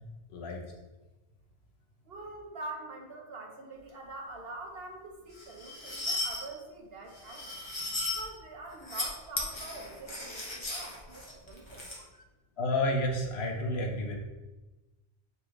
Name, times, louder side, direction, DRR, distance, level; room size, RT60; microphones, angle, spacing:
voice 1, 0.3-0.6 12.6-14.2, left 1 dB, 80° left, 2 dB, 1.2 m, -30 dB
voice 2, 2.0-7.5 8.1-11.9, right 2 dB, 70° right, 1 dB, 1.4 m, -44 dB
sound 1, 5.3-6.4 7.2-8.2 8.7-9.1 9.4-12.0, left 2 dB, 25° left, 1.2 m, -36 dB
9.5 x 4.0 x 3.2 m, 1.2 s
omnidirectional pair, 1.0 m